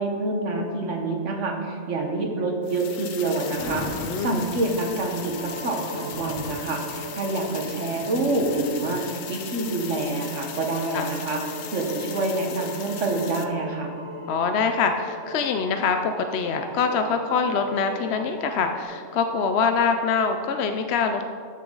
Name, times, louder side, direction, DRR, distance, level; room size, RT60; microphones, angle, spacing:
voice 1, 0.0-11.4 11.7-13.9, right 2 dB, 65° right, 2 dB, 1.6 m, -27 dB
sound 1, 2.6-13.4, left 8 dB, 85° left, 1.1 m, -39 dB
Thunder, 3.1-10.3, left 3 dB, 50° left, 1.3 m, -40 dB
voice 2, 4.0-4.4 10.9-11.1 14.3-21.2, left 5 dB, 65° left, 6 dB, 0.8 m, -24 dB
sound 2, 5.3-18.8, right 1 dB, 25° right, 1.0 m, -40 dB
13.5 x 6.8 x 3.9 m, 2.2 s
omnidirectional pair, 1.3 m